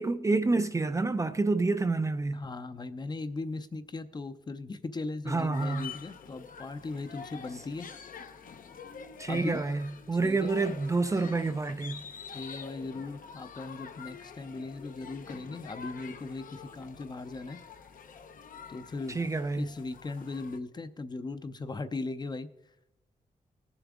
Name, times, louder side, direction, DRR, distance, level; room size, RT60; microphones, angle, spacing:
voice 1, 0.0-2.4 5.3-5.9 9.2-12.0 19.1-19.7, right 3 dB, 20° right, 0.4 m, -28 dB
voice 2, 2.3-7.9 9.3-9.6 10.2-10.5 12.3-17.6 18.7-22.5, left 3 dB, 30° left, 0.6 m, -38 dB
sound 1, 5.5-20.6, left 6 dB, 75° left, 0.9 m, -46 dB
20.0 x 7.0 x 3.6 m
wide cardioid pair, 130°, 14 cm